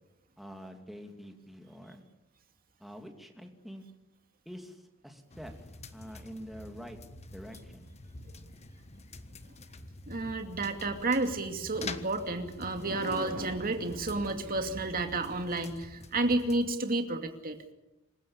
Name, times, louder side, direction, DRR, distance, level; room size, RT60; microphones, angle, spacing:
voice 1, 0.4-2.0 2.8-3.8 4.4-7.0 7.3-7.9, equal, ahead, 4 dB, 2.7 m, -46 dB
sound 1, 5.3-16.7, left 3 dB, 30° left, 1.3 m, -47 dB
voice 2, 10.1-17.6, right 2 dB, 40° right, 6 dB, 2.5 m, -31 dB
27.5 x 15.5 x 8.6 m, 0.97 s
head